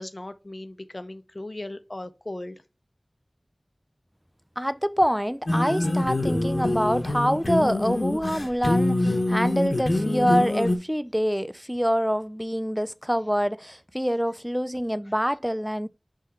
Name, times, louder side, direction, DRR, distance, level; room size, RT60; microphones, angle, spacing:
voice 1, 0.0-2.6, left 1 dB, 50° left, 0.7 m, -37 dB
voice 2, 4.6-15.9, equal, 5° right, 0.4 m, -26 dB
sound 1, 5.5-10.8, left 1 dB, 70° left, 1.2 m, -25 dB
6.2 x 3.8 x 4.2 m
wide cardioid pair, 45°, 0 cm